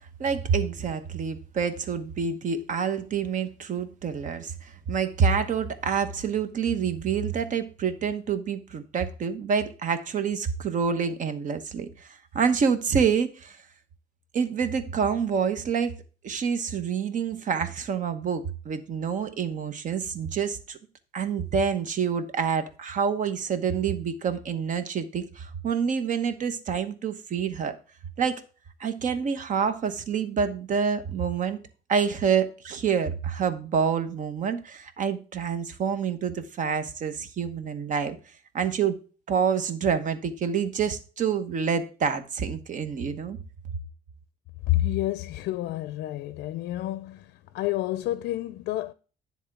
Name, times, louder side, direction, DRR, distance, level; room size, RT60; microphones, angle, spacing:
voice 1, 0.2-13.6 14.3-15.9 16.2-20.8 21.1-27.7 28.2-28.4 28.8-31.6 31.9-38.2 38.5-39.0 39.3-43.4, right 6 dB, 50° right, 1.1 m, -27 dB
voice 2, 44.7-48.9, left 15 dB, 75° left, 0.4 m, -29 dB
10.0 x 3.6 x 6.0 m
cardioid pair, 110°, 17 cm